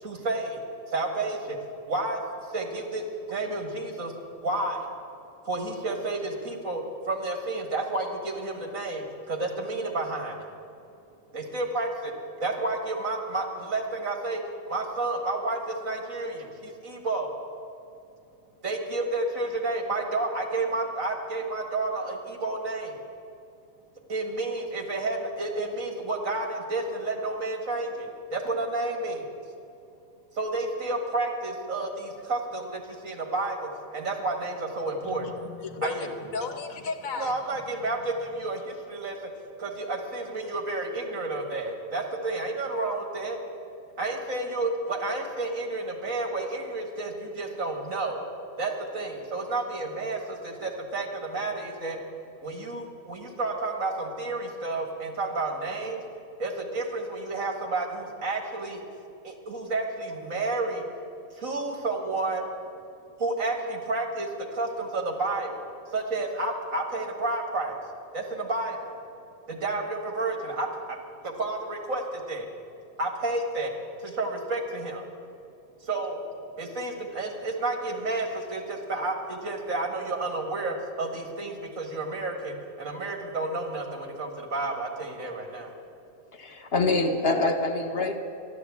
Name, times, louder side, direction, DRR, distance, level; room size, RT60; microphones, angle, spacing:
voice 1, 0.0-0.6 0.9-1.6 1.9-2.2 2.5-3.0 3.3-4.2 4.4-4.9 5.5-10.5 11.3-12.1 12.4-17.3 18.6-23.0 24.1-29.3 30.3-35.3 35.8-36.1 37.2-39.3 39.6-43.4 44.0-48.3 48.6-52.0 52.4-56.0 56.4-58.8 59.2-60.8 61.3-62.4 63.2-67.8 68.1-68.9 69.5-71.0 71.2-72.5 73.0-73.7 74.0-75.1 75.8-76.2 76.6-85.7, right 2 dB, 70° right, 2 dB, 2.3 m, -31 dB
voice 2, 35.0-37.6, left 4 dB, 70° left, 6 dB, 1.5 m, -35 dB
voice 3, 86.3-88.1, left 2 dB, 50° left, 4 dB, 1.3 m, -25 dB
13.0 x 11.5 x 8.4 m, 2.6 s
omnidirectional pair, 1.4 m